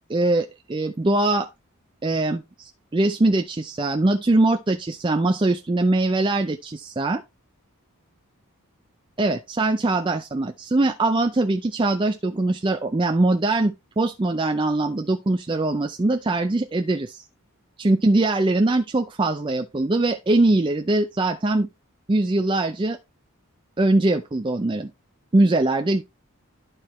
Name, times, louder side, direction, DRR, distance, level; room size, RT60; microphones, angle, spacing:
voice 1, 0.1-1.5 2.0-7.2 9.2-17.2 17.8-21.7 22.1-23.0 23.8-24.9 25.3-26.0, right 2 dB, 20° right, 0.4 m, -22 dB
11.5 x 4.5 x 3.1 m
head